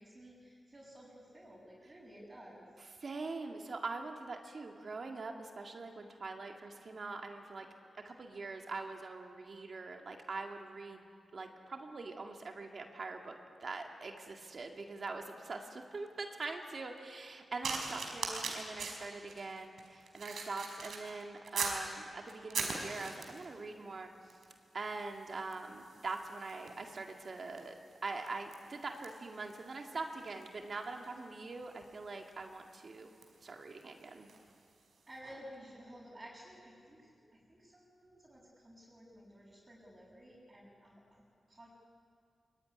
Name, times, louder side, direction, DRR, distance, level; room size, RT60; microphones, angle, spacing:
voice 1, 0.0-2.7 35.1-37.1 37.5-41.2 41.5-41.7, equal, 25° right, -5 dB, 6.9 m, -54 dB
voice 2, 2.8-7.7 8.0-11.0 11.3-13.3 13.6-24.1 24.7-27.7 28.0-33.1 33.4-34.3, right 3 dB, 50° right, 3 dB, 2.1 m, -43 dB
sound 1, 17.6-21.9 22.3-23.5 24.3-24.5 24.8-34.5 35.2-35.4, right 4 dB, 85° right, 4.8 m, -43 dB
24.5 x 22.0 x 9.9 m, 2.3 s
wide cardioid pair, 105°, 0 cm